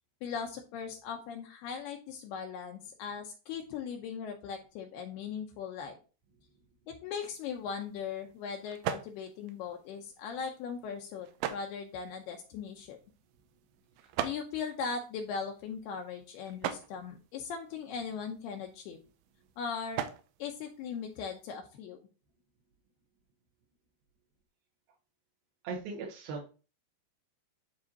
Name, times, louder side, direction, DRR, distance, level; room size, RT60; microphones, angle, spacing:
voice 1, 0.2-6.0 6.9-13.0 14.2-19.0 19.6-20.0 20.4-22.0, left 6 dB, 75° left, 2 dB, 2.5 m, -39 dB
sound 1, 7.2-21.6, right 10 dB, 85° right, 3.0 m, -43 dB
voice 2, 25.6-26.5, right 4 dB, 70° right, -3 dB, 2.5 m, -38 dB
12.5 x 4.2 x 2.8 m, 0.35 s
omnidirectional pair, 5.1 m